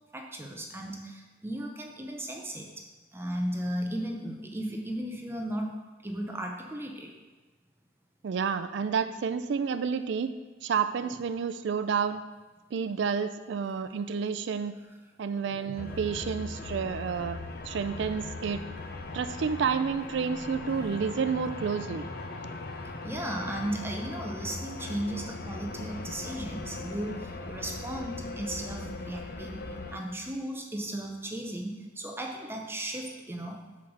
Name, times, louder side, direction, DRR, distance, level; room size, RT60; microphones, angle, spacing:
voice 1, 0.1-2.8 3.1-5.8 6.0-7.1 15.5-15.7 23.0-33.6, right 1 dB, 15° right, 2 dB, 0.7 m, -36 dB
voice 2, 8.2-10.3 10.6-12.2 12.7-14.7 15.2-17.4 17.6-18.6 19.1-22.0, right 6 dB, 70° right, 11 dB, 0.4 m, -30 dB
sound 1, 15.8-30.0, left 2 dB, 55° left, 0.7 m, -39 dB
5.7 x 4.7 x 6.3 m, 1.2 s
head